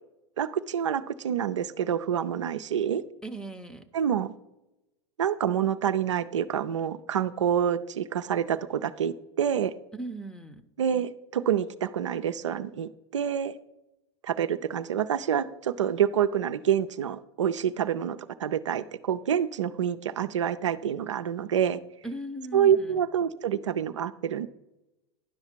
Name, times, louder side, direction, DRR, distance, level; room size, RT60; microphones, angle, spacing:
voice 1, 0.4-3.0 3.9-4.3 5.2-9.7 10.8-13.5 14.2-21.8 22.5-24.5, right 9 dB, 80° right, 9 dB, 0.5 m, -27 dB
voice 2, 3.2-3.9 9.9-10.6 22.0-23.0, right 2 dB, 5° left, 10 dB, 0.7 m, -38 dB
11.0 x 5.6 x 4.5 m, 0.92 s
hypercardioid pair, 90°, 15 cm